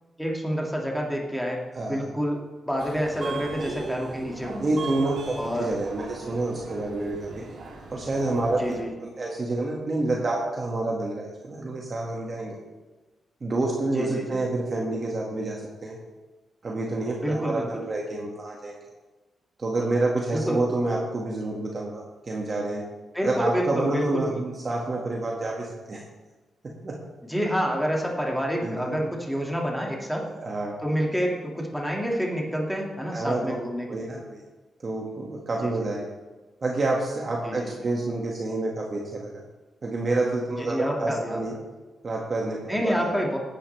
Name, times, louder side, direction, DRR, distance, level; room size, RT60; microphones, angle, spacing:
voice 1, 0.2-1.6 1.9-4.7 5.4-5.7 8.6-8.9 13.9-14.2 17.2-17.8 20.3-20.6 23.1-24.4 27.3-30.2 30.8-34.0 35.6-35.7 37.4-37.7 40.6-41.4 42.7-43.4, equal, ahead, -1 dB, 2.2 m, -28 dB
voice 2, 1.7-2.1 4.6-7.3 7.9-12.6 13.4-16.0 16.6-18.8 19.6-22.8 23.2-26.0 26.6-27.1 28.6-29.1 30.2-30.7 33.1-33.6 33.9-34.4 34.8-36.1 36.6-39.3 39.8-41.6 42.0-43.1, right 2 dB, 40° right, -2 dB, 1.9 m, -28 dB
Subway metro underground, 2.8-8.8, right 4 dB, 65° right, 2.5 m, -38 dB
17.5 x 10.0 x 3.4 m, 1.2 s
cardioid pair, 105°, 0 cm